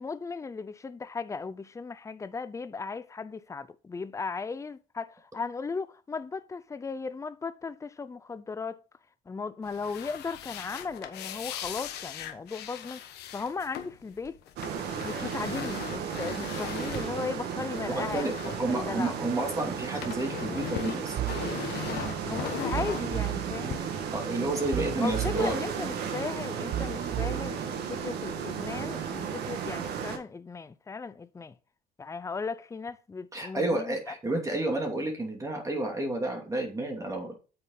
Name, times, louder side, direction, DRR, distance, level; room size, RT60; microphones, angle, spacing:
voice 1, 0.0-8.8 9.3-14.4 15.0-19.1 22.2-23.9 25.0-27.6 27.9-31.6 32.0-34.1, left 4 dB, 20° left, 0.6 m, -36 dB
sound 1, 9.6-19.4 19.7-23.8, left 10 dB, 75° left, 1.3 m, -39 dB
sound 2, 14.6-30.2, right 7 dB, 80° right, 1.7 m, -34 dB
voice 2, 17.9-21.2 24.1-25.6 33.3-37.4, right 2 dB, 20° right, 2.6 m, -30 dB
sound 3, 21.2-21.5 22.7-23.5 24.7-25.5 26.7-27.5, right 13 dB, 50° right, 0.5 m, -32 dB
8.4 x 6.7 x 3.9 m
cardioid pair, 110°, 17 cm